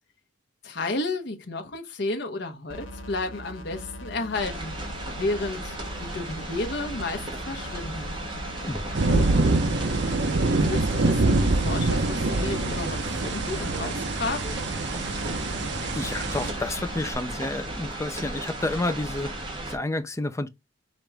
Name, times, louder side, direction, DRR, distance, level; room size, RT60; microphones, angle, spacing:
voice 1, 0.6-4.7 5.1-8.2 10.4-14.5, left 2 dB, 60° left, 0.9 m, -32 dB
sound 1, 2.7-17.1, equal, 80° left, 1.2 m, -41 dB
sound 2, 4.3-19.8, right 1 dB, 25° right, 1.5 m, -35 dB
voice 2, 8.7-9.3 15.9-20.5, left 2 dB, 15° left, 0.5 m, -30 dB
sound 3, 8.9-16.5, right 2 dB, 60° right, 0.7 m, -25 dB
5.0 x 3.0 x 3.3 m
head